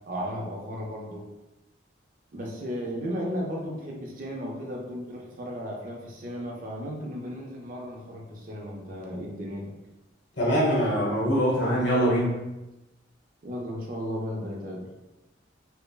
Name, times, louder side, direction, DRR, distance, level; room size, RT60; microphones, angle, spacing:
voice 1, 0.1-1.3 2.3-9.8 11.6-11.9 13.4-14.9, equal, 45° right, -2 dB, 0.5 m, -35 dB
voice 2, 10.4-12.3, equal, 70° left, -5 dB, 1.1 m, -23 dB
3.2 x 2.0 x 2.2 m, 0.98 s
head